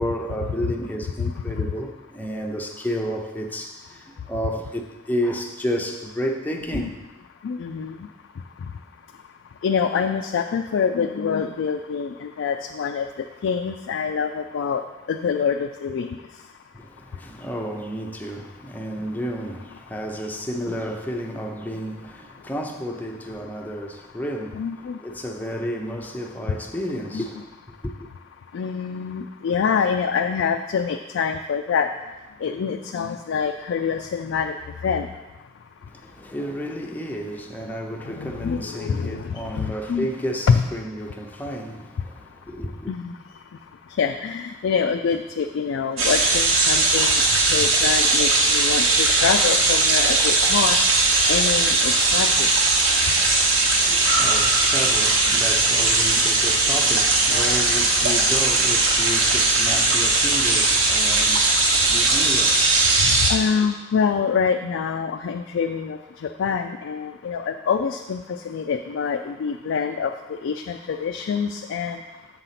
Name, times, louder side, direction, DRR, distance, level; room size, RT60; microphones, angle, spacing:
voice 1, 0.0-7.0 16.7-28.1 35.9-42.9 53.8-62.8 63.6-63.7, equal, 10° left, 0.5 m, -31 dB
voice 2, 7.4-8.0 9.6-13.1 13.4-14.8 15.1-16.2 24.5-25.0 27.1-27.2 28.5-31.9 32.4-34.6 34.8-35.1 38.1-40.1 40.5-40.6 42.9-43.1 44.0-50.8 51.3-52.5 63.0-70.1 70.4-72.0, left 6 dB, 70° left, 0.3 m, -25 dB
sound 1, 46.0-63.3, right 3 dB, 90° right, 1.1 m, -19 dB
7.2 x 4.0 x 5.7 m
head